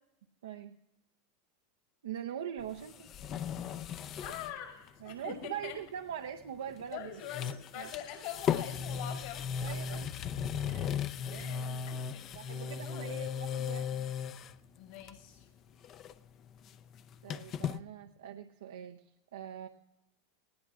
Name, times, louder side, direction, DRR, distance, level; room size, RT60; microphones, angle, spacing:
voice 1, 0.4-0.8 2.0-3.1 5.0-7.1 7.7-7.9 9.6-10.1 10.7-11.0 11.3-12.0 12.3-14.1 17.2-19.7, right 9 dB, 85° right, 5 dB, 0.6 m, -43 dB
sound 1, 2.6-4.6 4.9-5.0 6.7-6.9 7.2-14.6 15.0-15.4 15.7-17.8, left 7 dB, 40° left, 0.6 m, -37 dB
voice 2, 4.1-5.8 6.9-10.0 11.3-12.3 12.8-13.1 14.7-15.5, left 10 dB, 70° left, 2 dB, 5.4 m, -44 dB
19.0 x 17.0 x 2.5 m, 0.93 s
hypercardioid pair, 110°, 0 cm